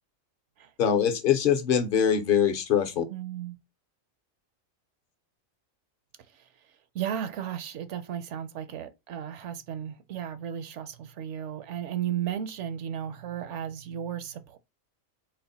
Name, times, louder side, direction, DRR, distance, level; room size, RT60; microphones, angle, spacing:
voice 1, 0.8-3.0, left 8 dB, 50° left, 0.7 m, -23 dB
voice 2, 3.1-3.6 6.3-14.6, right 9 dB, 70° right, 0.8 m, -35 dB
4.1 x 2.1 x 3.9 m
omnidirectional pair, 1.4 m